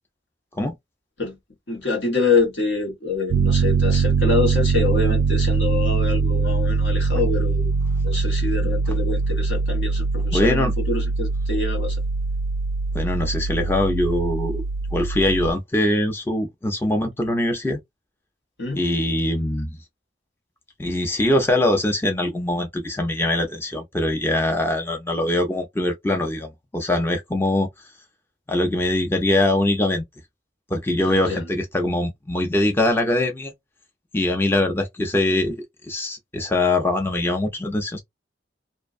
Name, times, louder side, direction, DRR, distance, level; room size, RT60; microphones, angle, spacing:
voice 1, 1.7-7.7 8.0-12.0 18.6-18.8 31.0-31.5, left 4 dB, 75° left, 1.2 m, -25 dB
Piano, 3.3-15.5, right 4 dB, 75° right, 0.3 m, -22 dB
voice 2, 10.3-10.7 12.9-14.6 14.9-17.8 18.7-19.8 20.8-27.7 28.5-30.0 30.7-33.5 34.1-35.6 35.9-38.0, left 1 dB, 15° left, 0.4 m, -22 dB
2.5 x 2.2 x 2.4 m
head